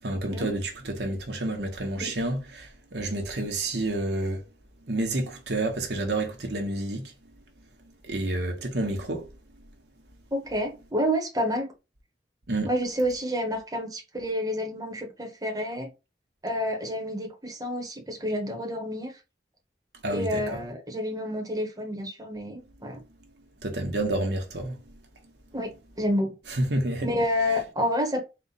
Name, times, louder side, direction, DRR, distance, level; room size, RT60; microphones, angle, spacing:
voice 1, 0.0-4.4 4.8-7.1 8.0-9.3 12.5-12.7 20.0-20.6 23.6-25.0 26.5-27.1, right 2 dB, 65° right, 1.1 m, -29 dB
voice 2, 10.3-11.7 12.6-15.9 16.4-19.1 20.1-23.0 25.5-25.7 26.0-26.3 27.0-28.3, equal, 20° right, 1.1 m, -29 dB
4.2 x 2.4 x 4.1 m
head